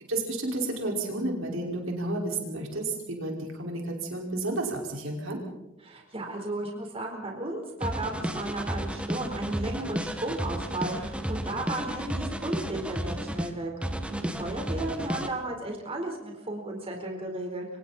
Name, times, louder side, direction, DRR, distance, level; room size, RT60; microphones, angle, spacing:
voice 1, 0.1-5.4, right 2 dB, 75° right, 0 dB, 5.3 m, -31 dB
voice 2, 5.8-13.7 14.1-17.6, right 2 dB, 30° right, 1 dB, 4.3 m, -34 dB
sound 1, 7.8-13.5 13.8-15.3, equal, 5° right, 1.9 m, -32 dB
28.5 x 25.0 x 4.4 m, 0.93 s
head